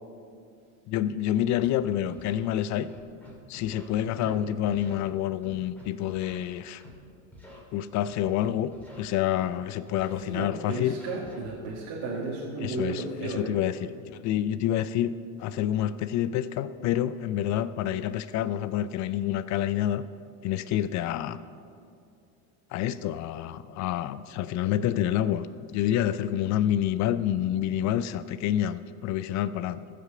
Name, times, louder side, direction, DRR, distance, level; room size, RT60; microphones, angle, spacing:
voice 1, 0.9-2.9 3.5-6.8 7.7-8.7 9.0-11.0 12.6-15.1 15.4-20.0 20.4-21.4 22.7-29.9, left 11 dB, 40° left, 15 dB, 0.4 m, -28 dB
Scratching (performance technique), 1.6-1.7 2.1-2.3 2.9-3.8 4.2-4.4 4.7-5.0 5.4-6.3 6.8-6.9 7.3-7.6 8.0-9.0 9.4-9.5 9.9-11.7, equal, 5° left, 2.7 m, -48 dB
voice 2, 4.0-4.4 10.1-13.5, right 3 dB, 60° right, -4 dB, 1.9 m, -34 dB
14.5 x 5.0 x 6.6 m, 2.4 s
hypercardioid pair, 95°, 45 cm